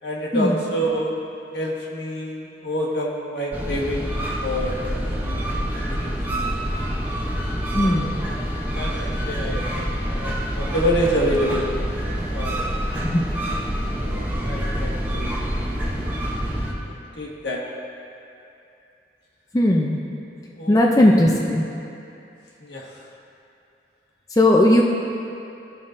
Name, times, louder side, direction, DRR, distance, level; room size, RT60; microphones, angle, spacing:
voice 1, 0.0-1.2 1.5-4.1 4.4-4.8 5.2-5.4 5.7-6.4 7.7-8.4 8.7-9.7 10.1-11.7 12.2-12.7 14.0-15.4 16.8-17.6 20.5-21.2 22.6-23.0, equal, 80° left, -3 dB, 1.4 m, -27 dB
sound 1, 3.5-16.7, equal, 10° right, 0.7 m, -26 dB
voice 2, 7.7-8.1 13.0-13.2 19.5-20.0 20.7-21.7 24.4-24.8, left 1 dB, 20° left, -1 dB, 0.5 m, -17 dB
15.0 x 5.6 x 2.6 m, 2.7 s
head